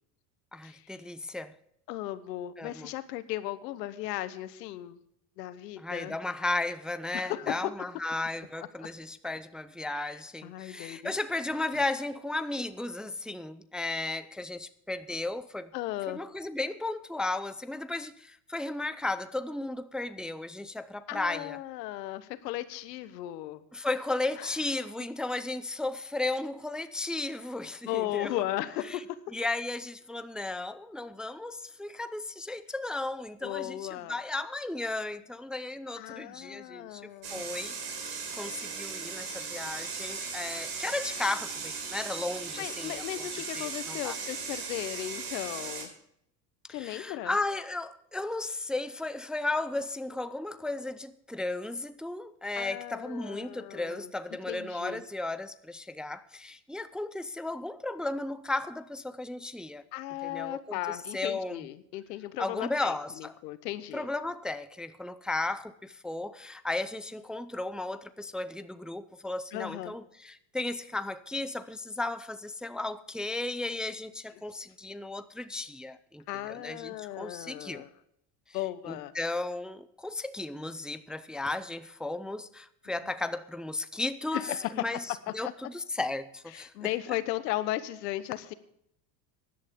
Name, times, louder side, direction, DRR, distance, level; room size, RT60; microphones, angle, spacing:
voice 1, 0.5-1.5 2.6-2.9 5.8-15.7 16.1-21.6 23.7-28.3 28.9-29.0 29.3-37.7 38.1-43.3 43.5-44.2 46.7-59.8 60.2-61.6 62.4-63.4 63.9-77.8 78.9-84.5 84.7-85.0 85.3-86.9, left 2 dB, ahead, 0.4 m, -35 dB
voice 2, 1.9-5.0 5.4-6.2 7.1-7.7 8.6-8.9 9.8-10.2 10.4-11.1 15.7-16.2 21.1-23.6 24.4-24.6 27.8-29.2 33.4-34.2 36.0-37.4 42.6-45.9 46.7-47.4 52.6-54.1 54.5-55.0 59.9-64.1 69.5-69.9 76.3-77.9 78.5-79.1 84.3-84.8 85.4-85.5 86.5-88.5, left 14 dB, 90° left, 1.1 m, -36 dB
sound 1, 37.2-45.8, right 5 dB, 50° right, 4.4 m, -37 dB
16.5 x 11.0 x 3.6 m
supercardioid pair, 100°, 48 cm